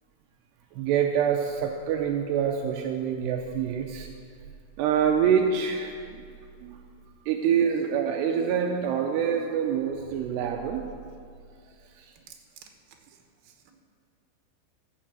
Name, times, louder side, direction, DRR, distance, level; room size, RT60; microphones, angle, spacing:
voice 1, 0.7-4.1 4.8-6.0 6.6-6.8 7.3-10.8 11.9-12.1, right 8 dB, 85° right, 2 dB, 2.5 m, -26 dB
voice 2, 12.1-13.7, right 8 dB, 65° right, 3 dB, 2.6 m, -53 dB
14.5 x 7.3 x 7.6 m, 2.2 s
omnidirectional pair, 5.5 m